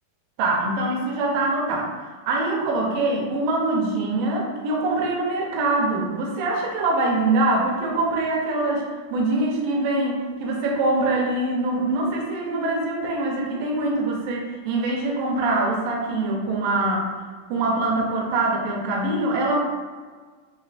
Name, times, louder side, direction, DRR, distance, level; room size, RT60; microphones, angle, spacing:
voice 1, 0.4-8.9 9.1-17.1 17.5-19.6, right 2 dB, 80° right, -2 dB, 2.1 m, -24 dB
7.0 x 2.5 x 2.5 m, 1.5 s
omnidirectional pair, 4.7 m